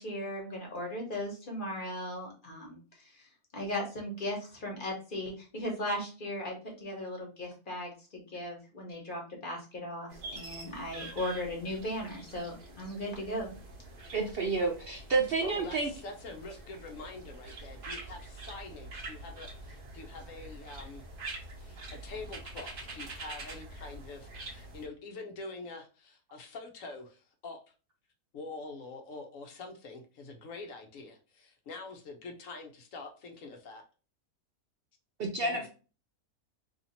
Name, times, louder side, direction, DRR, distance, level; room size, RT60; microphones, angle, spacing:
voice 1, 0.0-3.3 3.5-13.5, left 1 dB, 40° left, 0 dB, 1.1 m, -37 dB
sound 1, 10.1-24.9, right 2 dB, 45° right, 0.8 m, -46 dB
voice 2, 14.1-15.9 35.2-35.7, right 3 dB, 70° right, 1 dB, 0.5 m, -30 dB
voice 3, 15.4-21.0 21.6-27.6 28.3-33.8 35.4-35.7, left 3 dB, 65° left, 4 dB, 0.9 m, -45 dB
2.8 x 2.8 x 4.0 m, 0.35 s
omnidirectional pair, 1.6 m